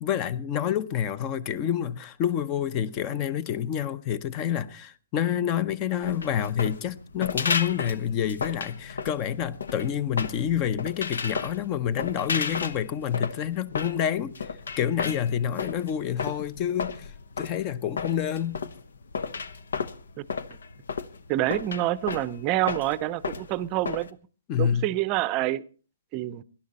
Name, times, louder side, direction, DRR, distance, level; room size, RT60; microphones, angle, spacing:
voice 1, 0.0-14.3 14.8-17.1 17.4-18.6 24.5-24.9, left 9 dB, 25° left, 0.7 m, -28 dB
sound 1, 6.0-24.1, left 5 dB, 80° left, 1.0 m, -33 dB
voice 2, 21.3-24.1 24.6-25.6 26.1-26.4, right 15 dB, 25° right, 0.6 m, -27 dB
17.5 x 11.5 x 4.1 m
hypercardioid pair, 155°, 0 cm